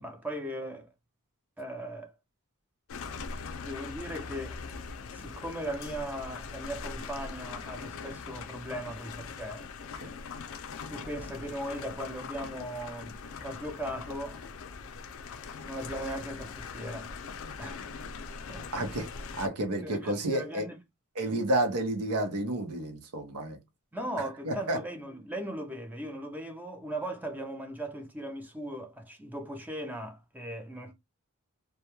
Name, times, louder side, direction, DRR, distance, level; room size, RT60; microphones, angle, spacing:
voice 1, 0.0-0.9 1.6-2.1 3.6-4.6 5.1-9.7 10.9-14.4 15.7-17.2 17.6-17.8 18.5-18.7 19.8-20.8 23.9-30.9, right 1 dB, 10° right, 0.4 m, -38 dB
sound 1, 2.9-19.5, left 5 dB, 65° left, 0.4 m, -41 dB
voice 2, 18.7-19.1 19.4-20.7 21.2-23.6 24.4-24.8, right 1 dB, 85° right, 0.6 m, -30 dB
2.2 x 2.1 x 2.9 m
head